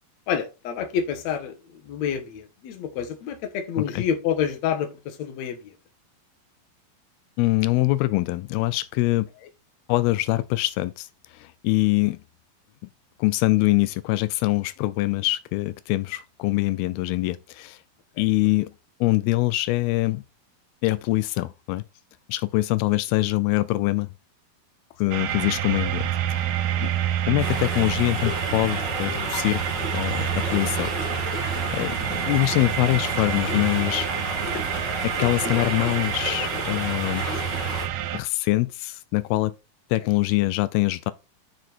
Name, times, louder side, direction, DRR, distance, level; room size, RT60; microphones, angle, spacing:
voice 1, 0.3-1.6 1.8-5.7, left 8 dB, 60° left, 2.2 m, -28 dB
voice 2, 7.4-9.3 9.9-12.2 13.2-17.8 18.2-18.7 19.0-20.2 20.8-21.8 22.3-24.1 25.0-26.5 26.8-26.9 27.3-29.6 29.9-30.9 31.4-34.1 35.0-37.5 38.1-39.5 39.9-41.1, left 19 dB, 85° left, 2.5 m, -24 dB
sound 1, 25.1-38.2, right 11 dB, 80° right, 2.8 m, -28 dB
sound 2, 27.4-37.9, left 3 dB, 40° left, 2.0 m, -32 dB
7.1 x 6.1 x 4.5 m
omnidirectional pair, 4.4 m